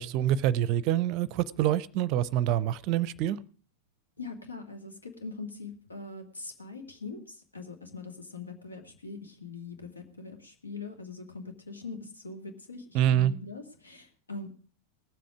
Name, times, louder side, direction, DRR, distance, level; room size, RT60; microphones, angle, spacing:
voice 1, 0.0-3.4 12.9-13.3, right 11 dB, 40° right, 0.5 m, -26 dB
voice 2, 4.2-14.6, left 4 dB, 80° left, 1.9 m, -42 dB
18.5 x 7.7 x 4.8 m
figure-of-eight pair, 90°, 0 cm